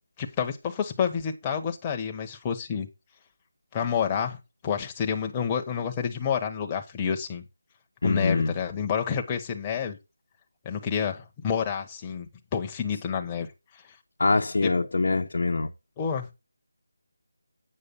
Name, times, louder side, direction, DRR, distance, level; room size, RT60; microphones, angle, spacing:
voice 1, 0.2-2.9 3.7-4.4 4.6-7.4 8.0-10.0 10.6-13.5 16.0-16.3, left 7 dB, 15° left, 1.2 m, -29 dB
voice 2, 8.0-8.5 14.2-15.7, left 3 dB, 65° left, 1.2 m, -24 dB
8.5 x 6.3 x 5.6 m
figure-of-eight pair, 165°, 0 cm